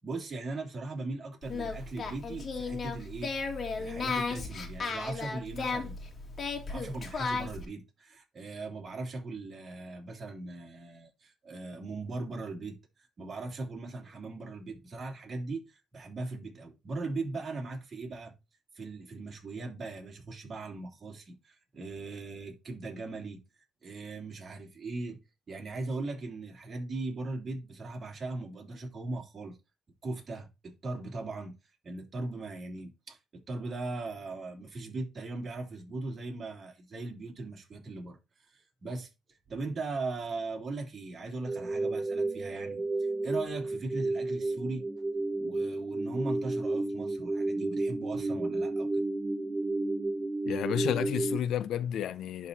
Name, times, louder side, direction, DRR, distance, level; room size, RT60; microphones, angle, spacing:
voice 1, 0.0-3.3 3.8-6.0 6.7-18.3 18.7-23.4 23.8-25.2 25.5-29.6 30.0-31.5 31.8-38.2 38.5-39.1 39.5-42.8 43.2-44.8 45.4-48.9, right 3 dB, 40° right, 3.3 m, -39 dB
Singing, 1.4-7.7, left 4 dB, 45° left, 2.1 m, -35 dB
sound 1, 41.4-51.4, right 2 dB, 20° right, 0.7 m, -32 dB
voice 2, 50.5-52.5, left 10 dB, 75° left, 0.6 m, -31 dB
11.0 x 4.2 x 2.9 m
cardioid pair, 90°, 0 cm